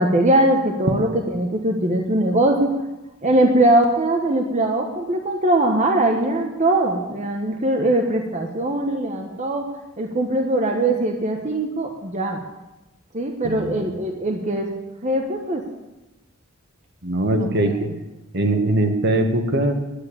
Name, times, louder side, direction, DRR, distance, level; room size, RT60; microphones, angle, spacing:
voice 1, 0.0-2.8 3.2-9.7 10.0-12.4 13.1-14.7 15.0-15.6 17.3-17.5, right 1 dB, 35° right, 2 dB, 1.1 m, -21 dB
voice 2, 13.4-13.8 17.0-17.9 18.3-19.7, right 1 dB, 55° right, 5 dB, 1.5 m, -21 dB
10.0 x 9.0 x 9.9 m, 1.0 s
head